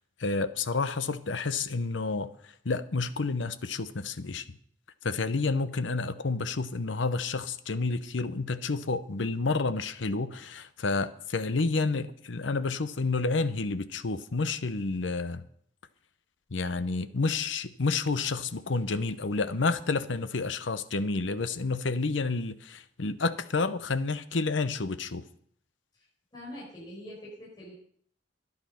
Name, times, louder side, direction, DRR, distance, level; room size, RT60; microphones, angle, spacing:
voice 1, 0.2-2.3 2.6-4.4 5.0-15.4 16.5-25.2, left 3 dB, 85° left, 12 dB, 0.8 m, -30 dB
voice 2, 26.3-27.7, left 1 dB, 25° left, -7 dB, 5.7 m, -44 dB
12.0 x 11.0 x 5.6 m, 0.62 s
head